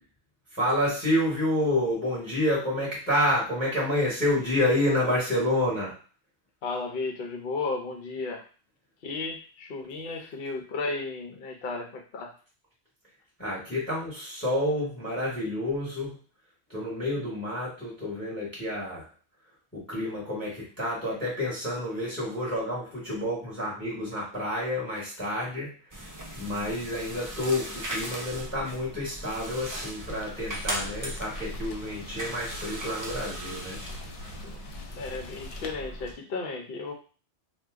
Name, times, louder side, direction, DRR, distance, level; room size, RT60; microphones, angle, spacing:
voice 1, 0.5-5.9 13.4-16.2 16.7-19.1 19.7-25.7 26.4-33.8, left 1 dB, 10° left, -5 dB, 1.0 m, -29 dB
voice 2, 6.6-8.4 9.0-12.3 34.4-34.6 35.0-36.9, left 3 dB, 60° left, 2 dB, 0.8 m, -34 dB
sound 1, 25.9-36.1, right 1 dB, 35° right, 0.3 m, -38 dB
Rain, 30.1-35.7, left 3 dB, 85° left, 0.9 m, -44 dB
2.6 x 2.2 x 3.5 m, 0.38 s
omnidirectional pair, 1.2 m